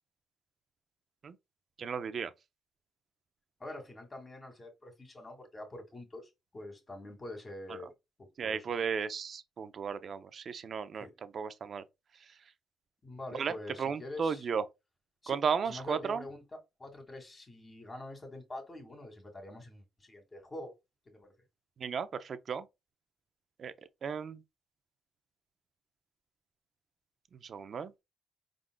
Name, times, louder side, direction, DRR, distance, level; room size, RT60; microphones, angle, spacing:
voice 1, 1.8-2.3 8.4-11.1 11.3-11.8 13.3-13.5 13.8-14.6 15.3-16.2 21.8-22.6 23.6-23.7 24.0-24.4 27.4-27.9, right 6 dB, 50° right, 0.6 m, -34 dB
voice 2, 3.6-7.9 8.4-8.6 11.0-11.1 13.0-14.5 15.2-15.4 15.6-20.7 21.1-21.3, left 2 dB, 25° left, 2.0 m, -45 dB
4.8 x 3.8 x 2.2 m
cardioid pair, 90°, 0 cm